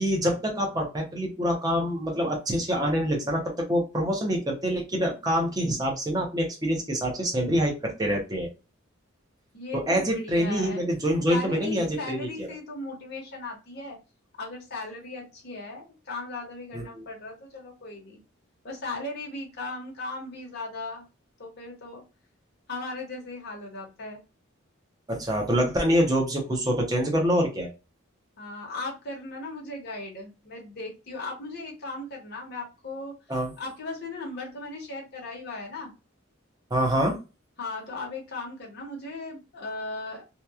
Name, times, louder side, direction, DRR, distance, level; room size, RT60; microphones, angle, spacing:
voice 1, 0.0-8.5 9.7-12.5 16.7-17.0 25.1-27.7 33.3-33.5 36.7-37.2, equal, 20° right, 1 dB, 0.7 m, -26 dB
voice 2, 9.5-10.9 11.3-14.0 14.4-18.2 18.6-21.0 21.4-22.0 22.7-24.2 28.4-33.1 33.6-35.9 37.6-40.2, left 2 dB, 55° left, -1 dB, 0.9 m, -37 dB
2.9 x 2.2 x 2.3 m, 0.29 s
head